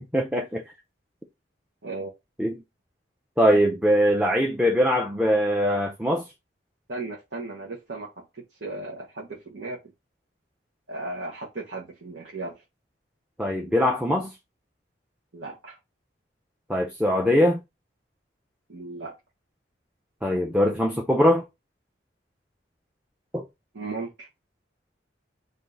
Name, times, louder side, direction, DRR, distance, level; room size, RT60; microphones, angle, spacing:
voice 1, 0.1-0.6 2.4-2.6 3.4-6.3 13.4-14.3 16.7-17.6 20.2-21.4 23.3-23.4, equal, 5° right, 0.5 m, -22 dB
voice 2, 6.9-9.8 10.9-12.6 15.3-15.8 18.7-19.2 23.7-24.3, right 3 dB, 75° right, 1.0 m, -36 dB
3.5 x 2.6 x 3.8 m
head